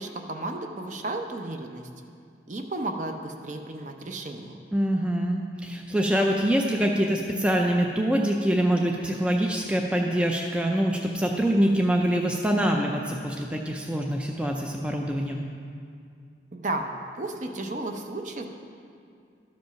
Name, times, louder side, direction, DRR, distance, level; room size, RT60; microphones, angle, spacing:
voice 1, 0.0-1.9 2.5-4.6 16.5-16.9 17.1-18.5, right 2 dB, 40° right, 5 dB, 0.7 m, -33 dB
voice 2, 4.7-15.5, equal, 5° right, 1 dB, 0.4 m, -25 dB
12.5 x 5.2 x 5.7 m, 2.3 s
head